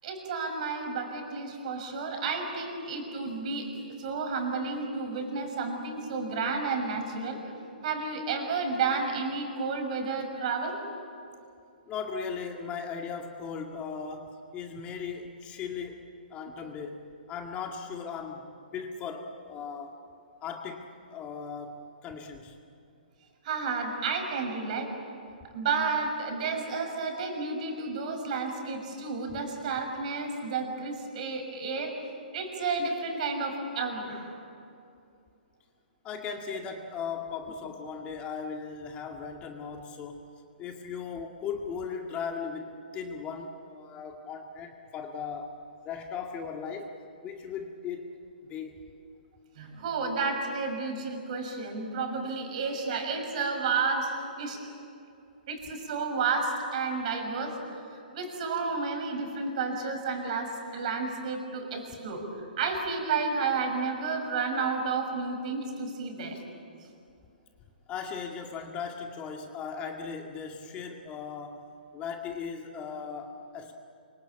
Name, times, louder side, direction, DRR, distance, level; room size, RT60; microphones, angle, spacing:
voice 1, 0.0-3.7 4.0-7.4 7.8-10.8 23.4-24.9 25.5-31.9 32.3-34.4 49.6-54.6 55.5-57.5 58.1-62.2 62.6-66.4, right 4 dB, 50° right, 4 dB, 6.3 m, -31 dB
voice 2, 11.9-18.5 18.7-19.9 20.4-22.6 29.3-29.4 36.0-40.3 40.6-45.6 45.8-46.9 47.2-48.1 48.5-48.8 66.3-66.4 67.9-71.7 71.9-73.7, left 6 dB, 25° left, 3 dB, 2.0 m, -38 dB
26.0 x 24.5 x 8.7 m, 2.5 s
hypercardioid pair, 140°, 5 cm